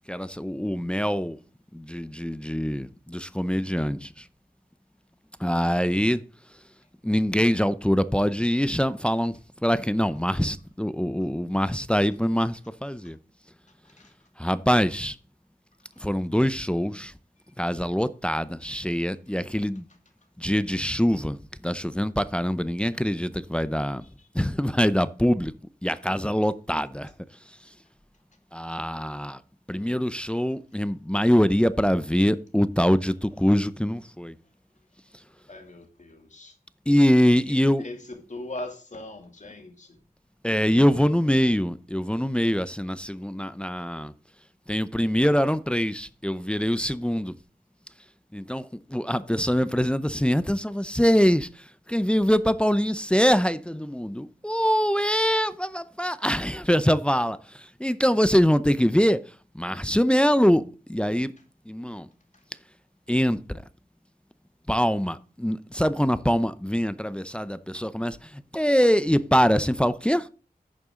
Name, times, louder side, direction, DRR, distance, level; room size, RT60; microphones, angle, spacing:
voice 1, 0.1-1.4 1.7-4.2 5.4-6.2 7.0-9.3 9.6-13.2 14.4-15.2 16.0-17.1 17.6-19.9 20.4-24.0 24.3-25.5 25.8-27.1 28.5-29.4 29.7-34.3 36.9-37.8 40.4-44.1 44.7-47.3 48.3-59.2 59.5-60.6 60.9-61.3 61.7-62.1 63.1-63.6 64.7-70.3, equal, 5° left, 0.6 m, -24 dB
voice 2, 35.5-36.5 37.5-40.0, left 1 dB, 50° left, 2.5 m, -40 dB
10.5 x 6.9 x 3.7 m
wide cardioid pair, 70°, 16 cm